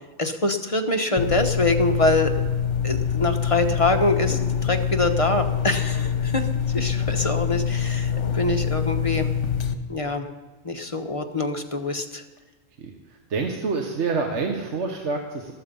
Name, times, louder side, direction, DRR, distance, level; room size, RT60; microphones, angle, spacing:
voice 1, 0.2-2.3 2.8-6.5 6.7-9.3 9.9-10.3 10.6-12.2, left 2 dB, 30° left, 5 dB, 1.1 m, -24 dB
sound 1, 1.2-9.7, left 7 dB, 70° left, 1.3 m, -25 dB
voice 2, 13.3-15.5, right 4 dB, 70° right, 3 dB, 1.5 m, -27 dB
14.0 x 13.5 x 5.4 m, 1.2 s
omnidirectional pair, 1.3 m